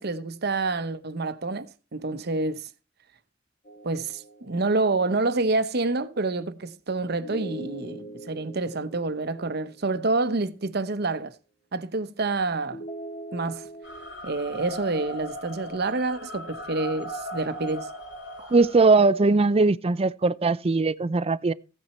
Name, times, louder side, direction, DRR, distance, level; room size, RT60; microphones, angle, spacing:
voice 1, 0.0-1.7 1.9-2.7 3.8-11.3 11.7-12.8 13.3-13.7 14.2-17.9, right 3 dB, 55° right, 0.9 m, -28 dB
sound 1, 3.6-5.2 7.2-10.4 12.7-14.1, right 2 dB, 50° left, 2.2 m, -42 dB
sound 2, 13.8-18.9, equal, 65° left, 2.5 m, -38 dB
voice 2, 18.5-21.5, right 3 dB, 30° right, 0.5 m, -20 dB
15.5 x 8.9 x 4.3 m
head